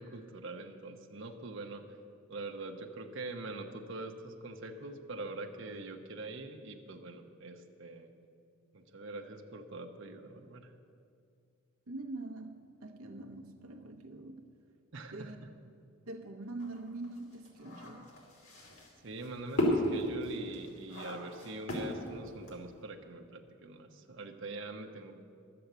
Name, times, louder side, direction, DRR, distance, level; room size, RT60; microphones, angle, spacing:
voice 1, 0.0-1.8 2.3-8.1 8.7-10.7 14.9-15.5 19.0-25.2, right 2 dB, 60° right, 3 dB, 0.9 m, -44 dB
voice 2, 11.9-14.5 15.1-15.4 16.1-18.1, right 2 dB, 90° right, 4 dB, 0.7 m, -44 dB
sound 1, 16.6-22.8, left 1 dB, 90° left, 3.0 m, -35 dB
11.5 x 7.8 x 7.9 m, 2.4 s
head